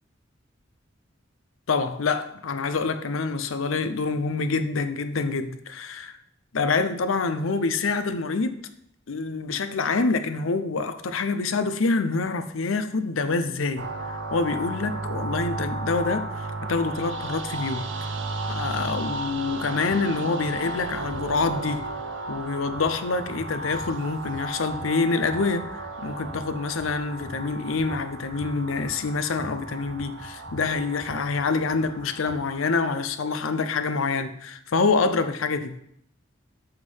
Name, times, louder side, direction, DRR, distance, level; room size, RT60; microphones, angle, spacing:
voice 1, 1.7-6.2 6.5-8.6 9.1-18.1 18.5-21.9 22.3-35.8, left 4 dB, 90° left, 0.6 m, -26 dB
sound 1, 13.8-33.1, right 2 dB, 65° right, 0.7 m, -34 dB
sound 2, 19.9-32.5, left 1 dB, 15° left, 0.6 m, -45 dB
8.0 x 3.8 x 5.4 m
head